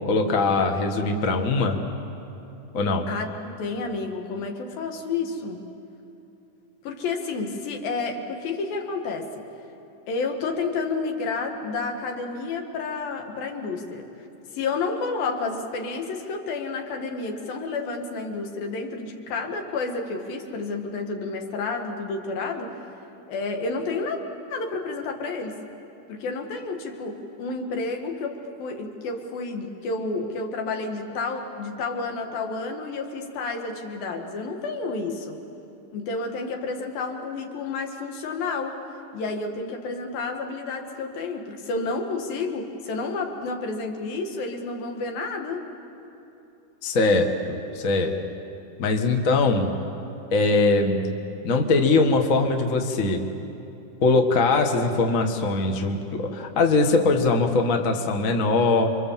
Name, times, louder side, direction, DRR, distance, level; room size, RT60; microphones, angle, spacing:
voice 1, 0.1-1.8 2.7-3.1 46.8-48.2 48.8-49.7 50.3-51.0 51.4-53.2 54.0-59.0, left 3 dB, 50° left, 4 dB, 1.0 m, -21 dB
voice 2, 3.1-5.6 6.8-9.3 10.1-14.1 14.5-22.9 23.3-24.2 24.5-25.6 26.1-35.4 35.9-38.8 39.1-45.6, left 3 dB, 75° left, 3 dB, 3.6 m, -30 dB
29.0 x 24.5 x 7.5 m, 2.9 s
omnidirectional pair, 4.2 m